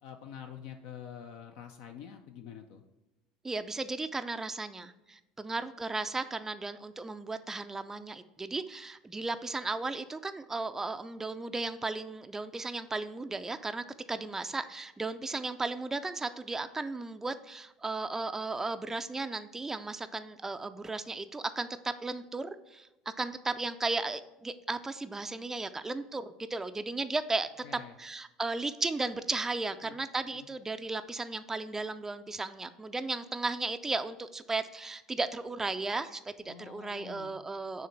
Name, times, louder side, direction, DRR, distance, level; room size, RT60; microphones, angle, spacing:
voice 1, 0.0-2.8 27.6-27.9 29.8-30.0 30.3-30.5 36.5-37.4, left 8 dB, 60° left, 5 dB, 0.5 m, -47 dB
voice 2, 3.4-22.9 23.2-37.9, right 3 dB, 15° right, 10 dB, 0.4 m, -35 dB
6.5 x 3.1 x 5.8 m, 1.0 s
hypercardioid pair, 75°, 3 cm